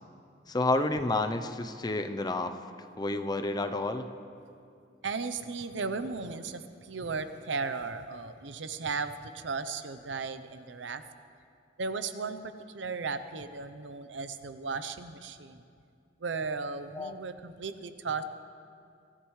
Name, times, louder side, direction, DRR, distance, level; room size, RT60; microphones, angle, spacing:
voice 1, 0.5-2.6 3.0-4.1 17.0-17.2, left 2 dB, 20° left, 8 dB, 0.6 m, -30 dB
voice 2, 5.0-11.0 11.8-15.6 16.2-18.2, right 4 dB, 75° right, 11 dB, 0.7 m, -36 dB
24.0 x 13.5 x 3.2 m, 2.4 s
head